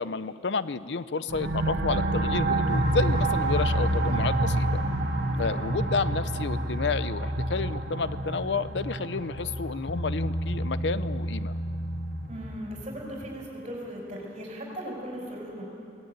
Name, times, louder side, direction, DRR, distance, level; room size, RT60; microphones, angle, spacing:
voice 1, 0.0-4.8 5.4-11.5, left 4 dB, 80° left, 14 dB, 0.7 m, -30 dB
sound 1, 1.3-12.6, right 1 dB, 65° right, 1.9 m, -28 dB
Bass guitar, 9.9-13.3, equal, 55° left, 0.9 m, -33 dB
voice 2, 12.3-15.7, equal, 35° right, -2 dB, 5.5 m, -38 dB
24.0 x 17.5 x 8.9 m, 2.6 s
head